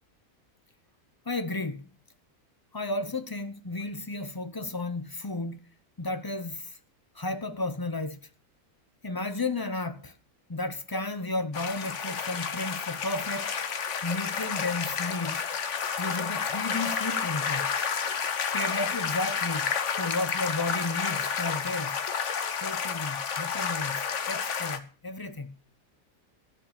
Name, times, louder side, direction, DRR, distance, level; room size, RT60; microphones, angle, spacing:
voice 1, 1.3-1.9 2.7-5.6 6.0-6.8 7.1-8.2 9.0-10.2 10.5-13.5 14.0-15.4 16.0-17.7 18.5-22.0 22.6-25.5, left 2 dB, 25° left, 0.5 m, -33 dB
Water of a pool, 11.5-24.8, left 6 dB, 55° left, 1.3 m, -30 dB
14.5 x 5.1 x 8.6 m
omnidirectional pair, 1.6 m